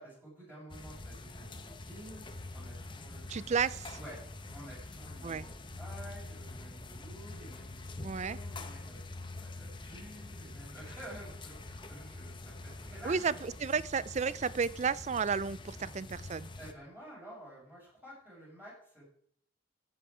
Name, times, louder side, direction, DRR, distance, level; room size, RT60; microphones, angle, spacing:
voice 1, 0.0-3.6 4.0-4.2 4.5-13.4 16.6-19.0, equal, 10° right, -7 dB, 5.4 m, -51 dB
sound 1, 0.7-16.7, left 2 dB, 25° left, 0.9 m, -45 dB
voice 2, 3.3-4.0 5.2-5.5 8.0-8.4 13.0-16.5, right 6 dB, 35° right, 19 dB, 0.4 m, -32 dB
14.0 x 7.7 x 4.9 m, 0.64 s
head